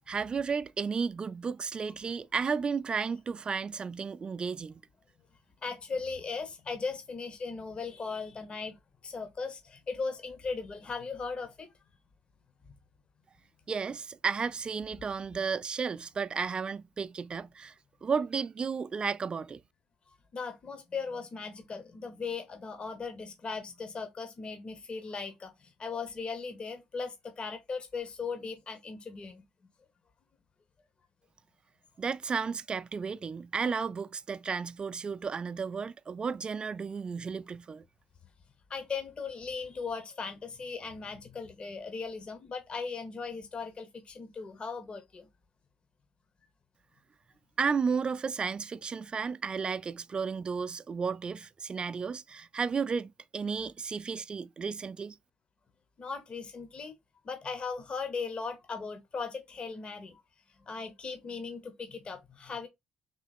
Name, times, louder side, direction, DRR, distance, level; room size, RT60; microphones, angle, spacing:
voice 1, 0.1-4.8 13.7-17.7 18.0-19.6 32.0-37.8 47.6-55.2, right 5 dB, 40° right, 0.3 m, -33 dB
voice 2, 5.6-8.8 9.0-11.7 20.3-29.4 38.7-45.3 56.0-56.9 57.2-60.2 60.6-62.7, left 4 dB, 45° left, 0.8 m, -38 dB
3.8 x 2.9 x 4.1 m
supercardioid pair, 60°, 3 cm